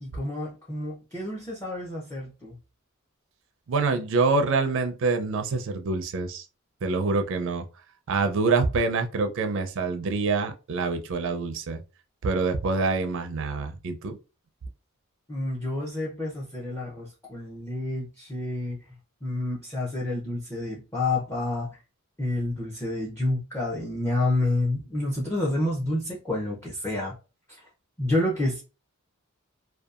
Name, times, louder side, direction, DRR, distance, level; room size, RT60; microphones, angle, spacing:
voice 1, 0.0-2.5 15.3-18.8 19.2-21.7 22.2-27.1 27.6-27.7 28.0-28.6, left 2 dB, 10° left, 0.5 m, -29 dB
voice 2, 3.7-6.4 6.8-7.6 8.1-11.8 12.2-14.2, right 3 dB, 65° right, 0.4 m, -26 dB
2.7 x 2.3 x 2.4 m
head